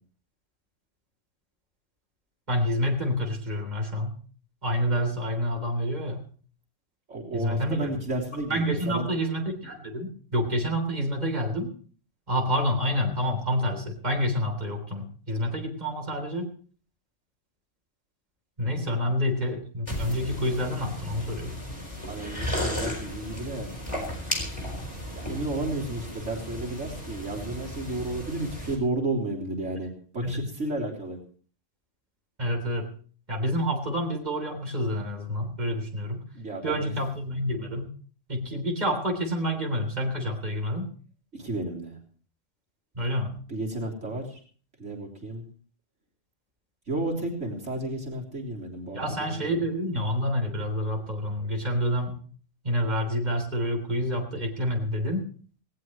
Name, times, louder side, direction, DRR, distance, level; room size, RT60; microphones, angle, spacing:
voice 1, 2.5-4.1 4.6-6.2 7.3-8.0 8.5-11.7 12.3-16.5 18.6-21.6 30.2-30.5 32.4-32.9 33.3-36.2 36.6-37.8 38.3-40.9 42.9-43.3 48.9-52.2 52.6-55.2, equal, 35° right, 2 dB, 3.6 m, -28 dB
voice 2, 7.1-9.1 18.8-19.0 22.0-23.7 25.1-31.2 36.3-36.9 41.3-42.0 43.5-44.4 44.8-45.4 46.9-49.6, right 2 dB, 65° right, -1 dB, 3.8 m, -32 dB
sound 1, 19.9-28.8, equal, 25° left, 4.7 m, -35 dB
19.0 x 18.0 x 3.2 m, 0.43 s
omnidirectional pair, 1.3 m